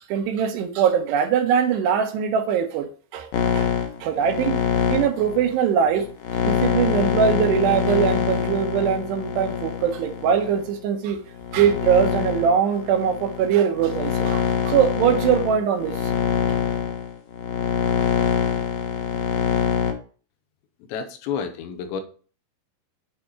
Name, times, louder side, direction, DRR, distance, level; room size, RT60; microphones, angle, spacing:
voice 1, 0.1-2.9 3.1-3.7 4.0-4.6 4.9-6.1 6.4-11.2 11.5-15.9, right 8 dB, 80° right, 5 dB, 3.0 m, -21 dB
sound 1, 3.3-10.7 11.3-19.9, left 8 dB, 65° left, 2.3 m, -24 dB
voice 2, 20.9-22.0, left 7 dB, 85° left, 6 dB, 3.2 m, -30 dB
8.9 x 4.2 x 4.7 m, 0.39 s
omnidirectional pair, 5.0 m